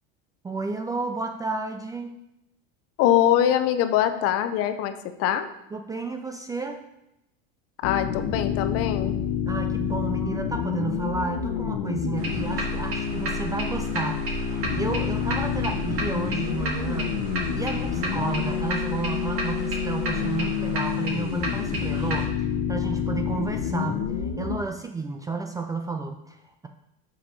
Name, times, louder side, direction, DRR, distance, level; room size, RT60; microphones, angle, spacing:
voice 1, 0.4-2.1 5.7-6.8 9.5-26.7, right 3 dB, 10° right, 5 dB, 0.4 m, -32 dB
voice 2, 3.0-4.9 5.2-5.5 7.8-9.1, left 11 dB, 50° left, 10 dB, 0.7 m, -22 dB
sound 1, 7.8-24.6, left 8 dB, 70° left, 1.0 m, -28 dB
sound 2, 12.2-22.3, right 3 dB, 45° right, 1.7 m, -33 dB
6.3 x 5.7 x 5.4 m, 0.86 s
supercardioid pair, 135°, 30 cm